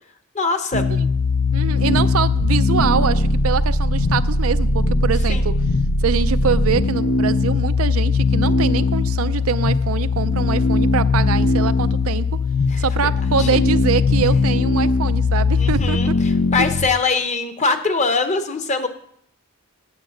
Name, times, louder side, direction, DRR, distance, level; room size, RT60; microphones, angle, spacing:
voice 1, 0.3-0.9 5.3-5.4 12.7-13.1 13.4-13.5 15.6-18.9, left 4 dB, 35° left, 9 dB, 0.9 m, -22 dB
sound 1, 0.7-16.9, left 3 dB, 90° left, 0.8 m, -19 dB
voice 2, 1.5-5.5 6.0-12.3 12.8-16.1 16.6-16.7, right 6 dB, 85° right, 13 dB, 0.5 m, -24 dB
8.9 x 7.8 x 7.1 m, 0.70 s
head